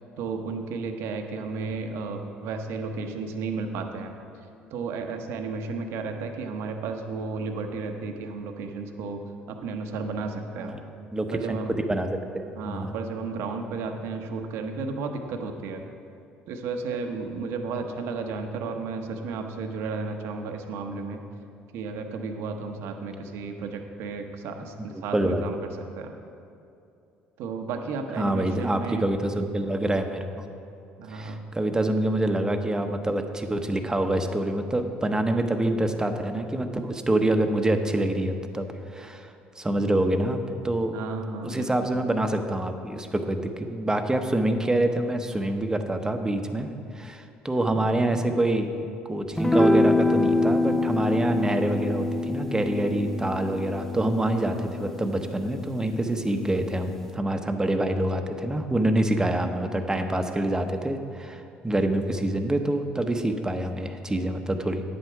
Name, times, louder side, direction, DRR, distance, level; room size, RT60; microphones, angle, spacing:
voice 1, 0.2-4.1 4.7-9.2 9.5-10.7 11.3-11.7 12.5-15.8 16.5-21.2 21.7-25.6 26.0-26.1 27.4-29.0 31.0-31.4 40.9-41.9, right 4 dB, 70° right, 5 dB, 0.9 m, -33 dB
voice 2, 11.1-11.6 11.9-12.9 25.1-25.5 28.2-30.5 31.1-38.7 38.9-39.3 39.6-40.4 40.6-41.0 41.4-64.8, right 1 dB, 15° right, 6 dB, 0.9 m, -26 dB
sound 1, 49.4-55.9, left 2 dB, 10° left, 0.5 m, -25 dB
9.8 x 7.7 x 4.8 m, 2.6 s
hypercardioid pair, 65°, 5 cm